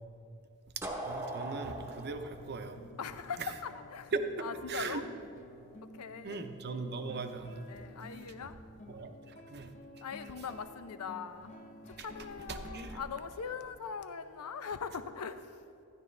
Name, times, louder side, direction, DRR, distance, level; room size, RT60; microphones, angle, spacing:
sound 1, 0.8-3.7, right 1 dB, 10° right, 0.9 m, -40 dB
voice 1, 1.0-2.8 4.1-4.2 4.7-5.0 6.2-7.7 8.9-9.1 9.5-9.7 12.5-13.0, right 4 dB, 50° right, 7 dB, 0.7 m, -38 dB
sound 2, 2.4-15.2, left 1 dB, 30° left, 0.6 m, -53 dB
voice 2, 3.0-4.1 4.4-5.0 5.8-6.4 7.7-8.6 10.0-11.5 11.8-15.6, left 6 dB, 80° left, 11 dB, 0.6 m, -41 dB
12.0 x 10.5 x 3.3 m, 2.6 s
head